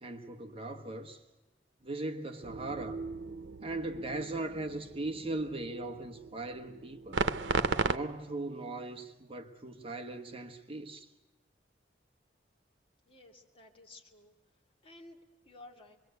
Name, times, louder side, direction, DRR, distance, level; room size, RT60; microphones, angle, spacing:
voice 1, 0.0-1.2 1.8-3.0 3.6-7.2 7.8-11.1, right 2 dB, 30° right, 1.3 m, -39 dB
sound 1, 2.4-8.0, right 4 dB, 90° right, 0.9 m, -36 dB
voice 2, 13.0-14.3 14.8-15.2 15.4-16.0, left 2 dB, 30° left, 2.7 m, -54 dB
25.5 x 22.5 x 8.0 m
head